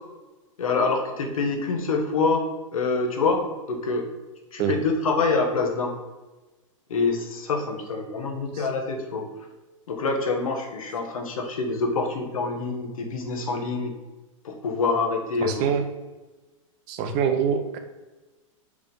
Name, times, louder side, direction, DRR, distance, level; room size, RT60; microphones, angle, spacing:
voice 1, 0.6-4.1 4.5-6.0 6.9-9.3 9.9-13.9 14.4-15.7, left 4 dB, 80° left, 3 dB, 1.3 m, -26 dB
voice 2, 15.4-15.8 16.9-17.8, right 7 dB, 40° right, 7 dB, 0.8 m, -25 dB
4.9 x 3.6 x 5.3 m, 1.2 s
hypercardioid pair, 125°, 17 cm